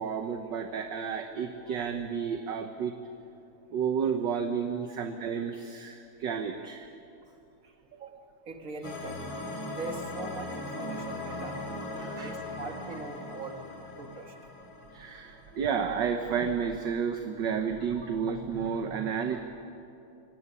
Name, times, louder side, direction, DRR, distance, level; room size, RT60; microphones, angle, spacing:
voice 1, 0.0-2.9 3.7-6.9 12.0-12.3 14.9-19.4, right 6 dB, 60° right, 5 dB, 1.6 m, -31 dB
voice 2, 7.9-9.3 9.7-11.7 12.2-13.6 14.0-14.4 18.0-18.2, right 3 dB, 40° right, 4 dB, 2.4 m, -42 dB
sound 1, 8.8-15.9, left 2 dB, 65° left, 3.4 m, -39 dB
25.5 x 17.5 x 9.8 m, 2.9 s
omnidirectional pair, 2.4 m